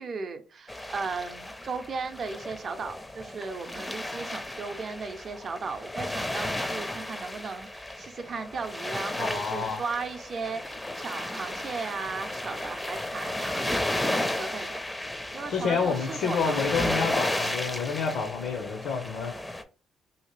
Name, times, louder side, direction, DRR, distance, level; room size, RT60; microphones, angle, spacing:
voice 1, 0.0-14.8 15.3-16.6, right 4 dB, 50° right, 0.6 m, -36 dB
sound 1, 0.7-19.6, left 1 dB, 10° left, 0.5 m, -33 dB
voice 2, 9.2-9.8 15.5-19.5, left 5 dB, 80° left, 0.6 m, -29 dB
2.8 x 2.8 x 3.1 m
cardioid pair, 90°, 0 cm